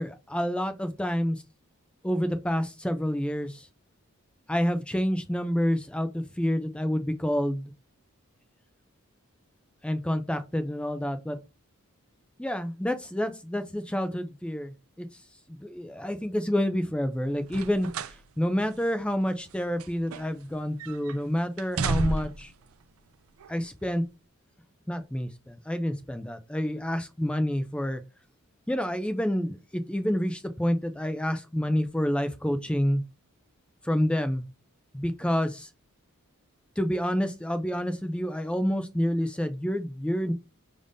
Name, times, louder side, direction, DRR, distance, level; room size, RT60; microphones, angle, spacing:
voice 1, 0.0-1.4 2.0-3.7 4.5-7.7 9.8-11.4 12.4-14.7 15.0-15.1 15.5-17.9 18.4-22.5 23.5-24.0 24.9-28.0 28.7-33.0 33.8-34.4 34.9-35.7 36.8-40.3, equal, 5° left, 9 dB, 0.3 m, -28 dB
sound 1, 17.4-18.2 18.6-18.7 19.5-20.5 20.8-21.2 21.6-22.5 23.4-23.5, right 4 dB, 75° right, 0.4 m, -32 dB
5.2 x 3.4 x 2.6 m, 0.29 s
head